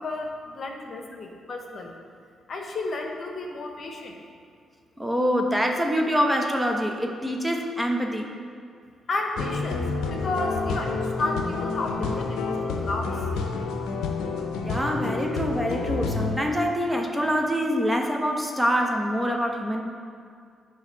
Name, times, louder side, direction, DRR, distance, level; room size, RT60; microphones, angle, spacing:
voice 1, 0.0-1.9 2.5-4.2 9.1-13.2, left 2 dB, 50° left, 2 dB, 0.9 m, -32 dB
voice 2, 5.0-8.4 14.6-19.8, equal, 10° right, 2 dB, 1.1 m, -25 dB
sound 1, 9.4-16.4, left 4 dB, 75° left, 0.6 m, -29 dB
9.1 x 3.2 x 5.9 m, 2.3 s
hypercardioid pair, 45°, 0 cm